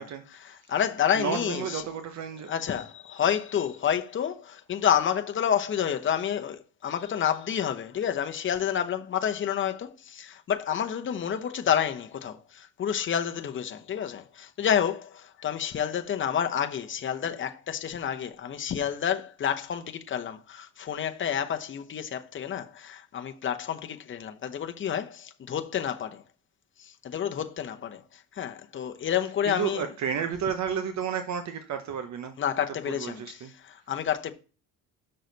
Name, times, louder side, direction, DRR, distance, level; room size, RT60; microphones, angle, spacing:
voice 1, 0.4-1.8 2.5-26.2 26.8-29.9 32.4-34.3, left 9 dB, 35° left, 0.9 m, -29 dB
voice 2, 1.1-2.5 29.5-32.3 32.9-33.5, right 7 dB, 55° right, 0.9 m, -32 dB
6.5 x 6.2 x 4.0 m
cardioid pair, 120°, 35 cm